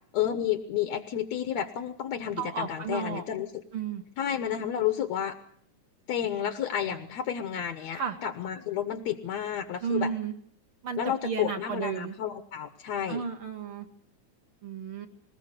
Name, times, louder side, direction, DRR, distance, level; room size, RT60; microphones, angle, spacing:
voice 1, 0.1-3.5 4.2-5.4 6.1-10.1 11.0-13.2, left 10 dB, 70° left, 9 dB, 2.1 m, -31 dB
voice 2, 2.4-3.2 3.7-4.0 6.8-6.9 8.0-8.2 9.8-10.3 10.8-12.1 13.1-13.9 14.6-15.1, right 6 dB, 50° right, 4 dB, 2.0 m, -33 dB
20.5 x 20.0 x 6.6 m, 0.63 s
omnidirectional pair, 3.5 m